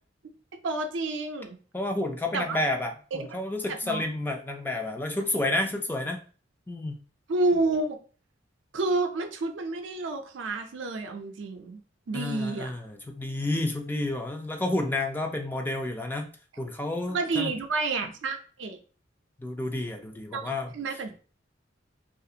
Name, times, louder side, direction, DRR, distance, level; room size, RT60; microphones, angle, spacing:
voice 1, 0.6-1.6 2.3-2.6 3.1-3.3 3.7-4.0 7.3-8.0 8.7-11.8 12.1-12.7 17.1-18.8 20.3-21.1, right 3 dB, 70° right, 6 dB, 0.5 m, -29 dB
voice 2, 1.7-6.2 6.7-7.0 12.1-16.3 16.6-17.5 19.4-20.7, left 2 dB, 10° left, 3 dB, 0.3 m, -30 dB
2.4 x 2.4 x 2.7 m, 0.39 s
head